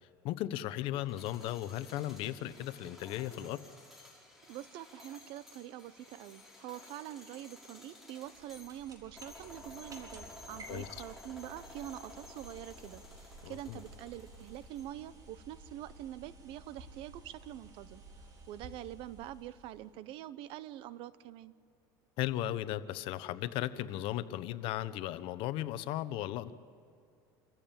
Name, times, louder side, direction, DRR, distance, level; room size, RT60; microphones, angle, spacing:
voice 1, 0.2-3.6 10.7-11.0 13.4-13.8 22.2-26.5, left 13 dB, 60° left, 14 dB, 1.0 m, -36 dB
sound 1, 1.0-15.1, left 2 dB, 5° right, 4.3 m, -54 dB
voice 2, 4.5-18.0 18.5-21.5, right 13 dB, 60° right, 16 dB, 0.9 m, -45 dB
sound 2, 8.2-20.0, right 2 dB, 35° right, 3.8 m, -54 dB
27.0 x 14.5 x 8.9 m, 2.4 s
supercardioid pair, 125°, 10 cm